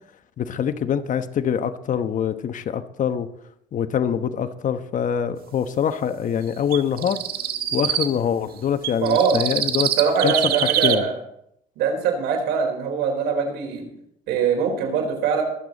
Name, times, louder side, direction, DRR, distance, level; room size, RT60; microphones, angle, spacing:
voice 1, 0.4-3.3 3.7-7.2 7.7-9.9 10.2-10.4 10.8-11.1, left 8 dB, 50° left, 10 dB, 1.1 m, -24 dB
sound 1, 6.7-8.1 8.8-11.0, right 10 dB, 65° right, 1.5 m, -24 dB
voice 2, 9.0-9.4 10.0-11.2 11.8-13.9 14.3-15.4, right 6 dB, 85° right, 3 dB, 4.4 m, -22 dB
23.0 x 8.3 x 4.1 m, 0.73 s
cardioid pair, 110°, 17 cm